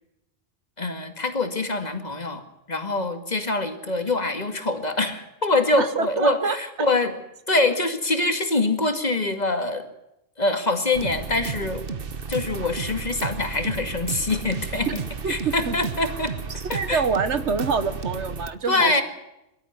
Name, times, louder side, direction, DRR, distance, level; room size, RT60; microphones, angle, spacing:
voice 1, 0.8-7.1 7.5-9.9 10.4-11.8 12.3-15.0 15.3-16.3 16.7-17.0 18.7-19.0, left 2 dB, 40° left, 7 dB, 2.3 m, -24 dB
voice 2, 5.8-6.6 14.9-15.0 15.2-15.7 16.7-19.0, right 5 dB, 85° right, 11 dB, 1.7 m, -26 dB
sound 1, 10.9-18.5, right 5 dB, 55° right, 1.4 m, -33 dB
23.0 x 13.0 x 9.5 m, 0.88 s
omnidirectional pair, 1.1 m